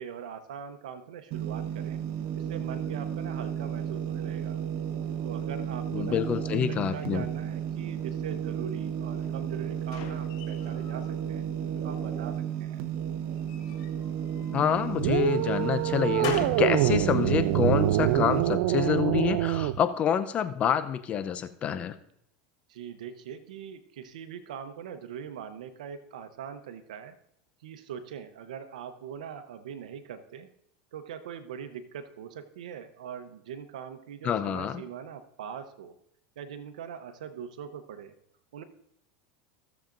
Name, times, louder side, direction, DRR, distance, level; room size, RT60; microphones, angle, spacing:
voice 1, 0.0-2.0 2.3-4.6 5.2-6.3 6.7-11.5 11.8-12.8 22.7-27.1 27.6-30.5 30.9-35.9 36.4-38.1 38.5-38.6, right 8 dB, 90° right, 10 dB, 0.8 m, -42 dB
sound 1, 1.3-18.5, right 9 dB, 55° right, 0.9 m, -33 dB
voice 2, 5.9-7.2 14.5-21.9 34.2-34.8, left 9 dB, 35° left, 10 dB, 0.6 m, -27 dB
sound 2, 9.2-11.2 11.6-12.3 13.3-14.8 15.4-16.7, left 7 dB, 70° left, 2.9 m, -42 dB
sound 3, 15.0-19.8, right 15 dB, 70° right, 0.3 m, -25 dB
16.0 x 7.2 x 2.6 m, 0.72 s
supercardioid pair, 125°, 4 cm